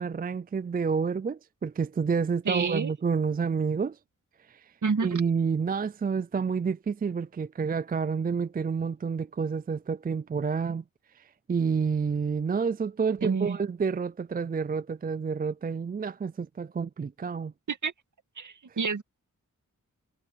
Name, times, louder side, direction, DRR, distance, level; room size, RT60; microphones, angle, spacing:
voice 1, 0.0-4.0 4.5-4.7 5.0-10.8 11.1-17.5, right 5 dB, 30° right, 0.4 m, -29 dB
voice 2, 2.5-2.9 4.8-5.1 13.2-13.6 17.7-17.9 18.4-19.0, right 5 dB, 65° right, 2.3 m, -28 dB
wide cardioid pair, 85°, 32 cm